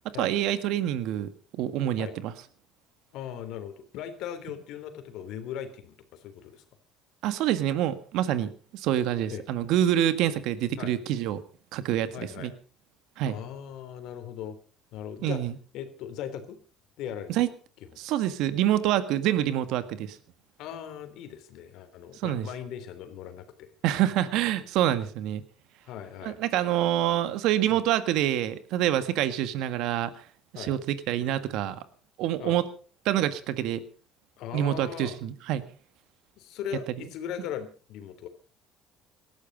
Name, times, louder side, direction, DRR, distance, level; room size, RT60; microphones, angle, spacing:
voice 1, 0.2-1.3 1.6-2.3 7.2-11.4 11.7-12.5 13.2-13.4 15.2-15.5 17.3-17.5 18.0-20.2 22.2-22.5 23.8-25.4 26.2-30.1 30.5-31.8 32.2-32.6 33.0-33.8 34.5-35.6, right 12 dB, 75° right, 12 dB, 1.7 m, -26 dB
voice 2, 3.1-6.6 9.3-9.4 10.8-11.0 12.1-12.5 13.2-14.6 14.9-15.4 15.7-16.6 17.0-17.3 20.6-23.7 25.9-26.4 27.7-27.8 30.5-30.7 32.4-32.6 34.4-35.2 36.4-38.3, left 9 dB, 70° left, 9 dB, 3.2 m, -38 dB
18.5 x 13.5 x 5.2 m, 0.40 s
supercardioid pair, 90°, 0 cm